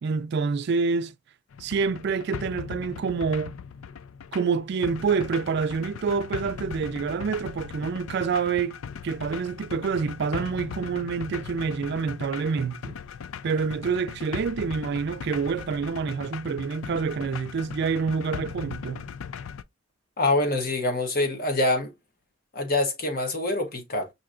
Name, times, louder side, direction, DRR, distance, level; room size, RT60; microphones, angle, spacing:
voice 1, 0.0-1.1 1.6-3.6 4.3-8.8 9.0-13.0 13.4-19.0, right 5 dB, 55° right, 0.3 m, -27 dB
sound 1, 1.5-19.6, left 7 dB, 90° left, 0.4 m, -39 dB
voice 2, 20.2-21.9 22.5-24.1, left 2 dB, 50° left, 1.1 m, -25 dB
5.8 x 2.7 x 2.4 m
head